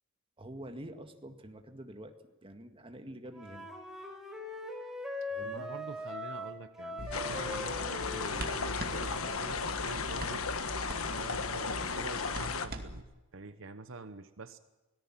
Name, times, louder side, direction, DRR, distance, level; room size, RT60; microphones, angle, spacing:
voice 1, 0.4-3.7 5.3-5.7, right 1 dB, 25° right, 6 dB, 1.9 m, -47 dB
Wind instrument woodwind instrument, 3.3-9.6, left 1 dB, ahead, 4.4 m, -41 dB
voice 2, 5.4-10.5 11.1-13.1 13.3-14.6, right 3 dB, 65° right, 11 dB, 1.0 m, -46 dB
sound 1, 7.0-13.0, right 1 dB, 45° right, 2.3 m, -42 dB
sound 2, 7.1-12.7, left 5 dB, 75° left, 1.4 m, -35 dB
25.0 x 18.0 x 7.5 m, 1.1 s
head